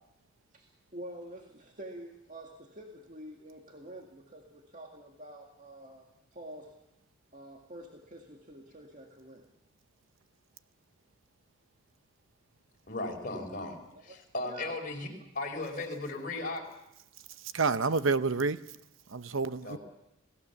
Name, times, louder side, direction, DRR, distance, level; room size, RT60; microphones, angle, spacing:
voice 1, 0.5-6.7 7.3-9.5 13.9-14.2 14.5-14.8, right 1 dB, 40° right, 2.0 m, -47 dB
voice 2, 12.9-13.8 14.0-15.1 15.3-16.6 19.6-19.8, left 2 dB, 40° left, 5.0 m, -36 dB
voice 3, 17.5-18.6 19.1-19.8, right 4 dB, 75° right, 0.8 m, -28 dB
28.5 x 17.5 x 7.1 m
head